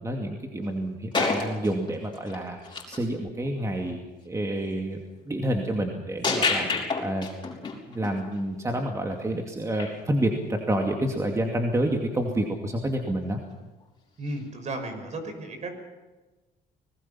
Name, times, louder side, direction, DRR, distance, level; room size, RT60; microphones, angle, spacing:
voice 1, 0.0-2.6 2.9-4.0 4.3-5.0 5.3-7.3 7.9-13.4, right 1 dB, 20° right, 2 dB, 2.5 m, -28 dB
sound 1, 0.6-0.7 1.1-3.0 3.4-3.6 6.2-8.2 9.8-9.9 14.3-14.4, left 4 dB, 25° left, 5.3 m, -28 dB
voice 2, 14.2-15.7, right 2 dB, 45° right, 6 dB, 5.8 m, -34 dB
25.5 x 20.0 x 5.8 m, 1.2 s
cardioid pair, 110°, 17 cm